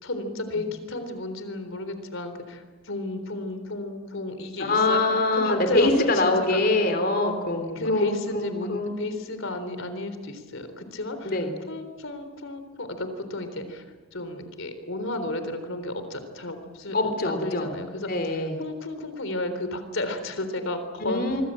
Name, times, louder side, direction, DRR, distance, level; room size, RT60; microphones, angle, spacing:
voice 1, 0.0-6.6 7.8-11.4 11.7-13.9 14.1-17.0 17.2-21.4, left 2 dB, 70° left, 9 dB, 3.8 m, -33 dB
voice 2, 4.6-8.9 11.2-11.5 16.9-17.7 18.1-18.6 21.0-21.4, left 2 dB, 45° left, 6 dB, 3.3 m, -24 dB
25.0 x 25.0 x 7.6 m, 1.3 s
head